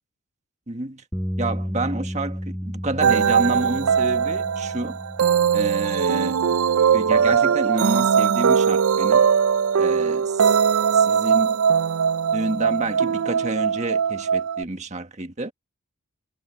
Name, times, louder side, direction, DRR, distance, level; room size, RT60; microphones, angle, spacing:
voice 1, 0.7-1.0 1.4-5.0 5.5-6.4 6.9-9.3 9.8-10.6 10.9-11.6 12.3-15.5, right 2 dB, 30° right, 1.6 m, -29 dB
sound 1, 1.1-7.4, equal, ahead, 5.5 m, -33 dB
sound 2, 3.0-14.6, right 7 dB, 75° right, 0.4 m, -20 dB
head